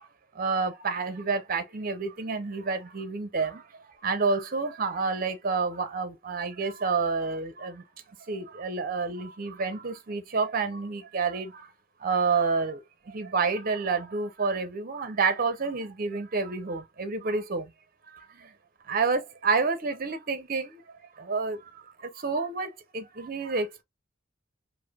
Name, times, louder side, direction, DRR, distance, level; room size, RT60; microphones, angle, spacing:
voice 1, 0.4-3.5 4.0-7.7 8.3-11.5 12.0-12.8 13.1-17.6 18.9-20.7 21.3-21.6 22.2-23.8, right 4 dB, 50° right, 0.7 m, -28 dB
4.7 x 2.1 x 2.3 m
head